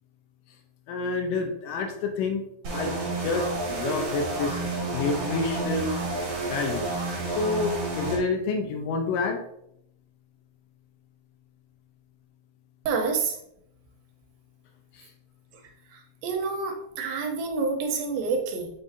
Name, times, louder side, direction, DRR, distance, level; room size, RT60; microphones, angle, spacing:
voice 1, 0.9-2.9 3.2-4.6 4.9-6.0 6.4-6.9 7.3-9.4 15.0-15.1, left 3 dB, 80° left, 5 dB, 2.3 m, -28 dB
sound 1, 2.6-8.2, right 2 dB, 50° right, 2.2 m, -30 dB
voice 2, 12.9-13.4 15.9-18.7, right 4 dB, 85° right, 4 dB, 2.8 m, -28 dB
6.9 x 5.3 x 2.7 m, 0.75 s
omnidirectional pair, 4.1 m